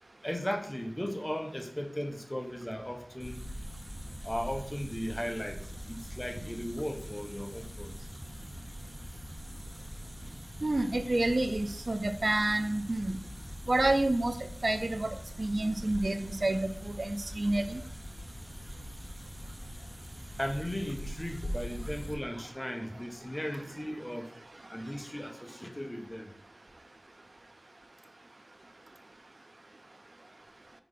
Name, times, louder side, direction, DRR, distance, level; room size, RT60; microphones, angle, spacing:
voice 1, 0.2-3.4 4.2-8.1 20.4-24.3 24.7-26.3, equal, 20° left, 4 dB, 1.0 m, -36 dB
sound 1, 3.2-22.1, equal, ahead, 1.1 m, -43 dB
voice 2, 10.6-13.2 13.7-14.3 14.6-15.1 15.4-17.8, right 2 dB, 60° right, 8 dB, 0.5 m, -29 dB
6.0 x 4.6 x 3.7 m, 0.70 s
wide cardioid pair, 50°, 0 cm